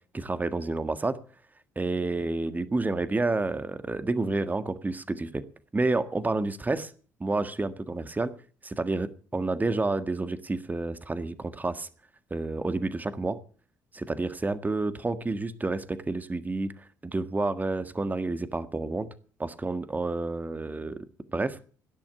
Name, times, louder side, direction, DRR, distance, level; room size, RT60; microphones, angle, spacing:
voice 1, 0.1-1.2 1.7-5.4 5.7-6.9 7.2-8.3 8.6-11.9 12.3-13.4 13.9-16.7 17.0-19.1 19.4-21.0 21.3-21.6, right 3 dB, 20° right, 11 dB, 1.6 m, -29 dB
17.5 x 10.5 x 7.2 m, 0.42 s
figure-of-eight pair, 45°, 9 cm